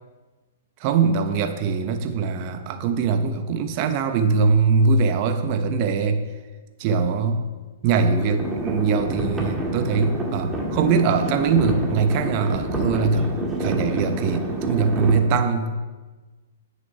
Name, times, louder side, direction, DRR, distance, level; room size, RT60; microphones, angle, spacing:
voice 1, 0.8-6.2 6.8-7.5 7.8-13.3 13.6-15.8, right 5 dB, 40° right, 7 dB, 0.9 m, -22 dB
sound 1, 8.0-15.2, right 1 dB, 10° right, 1.6 m, -27 dB
8.7 x 6.4 x 5.5 m, 1.3 s
hypercardioid pair, 135°, 0 cm